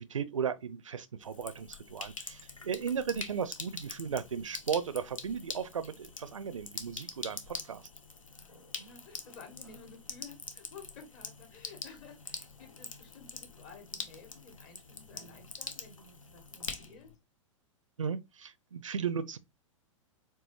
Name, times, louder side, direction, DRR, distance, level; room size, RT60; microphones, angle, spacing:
voice 1, 0.0-7.8 18.0-19.4, right 7 dB, 75° right, 0.5 m, -36 dB
Sink (filling or washing), 1.2-17.2, left 4 dB, 80° left, 0.8 m, -45 dB
voice 2, 8.2-17.1, left 5 dB, 40° left, 1.7 m, -53 dB
4.5 x 3.9 x 3.0 m
figure-of-eight pair, 100°, 17 cm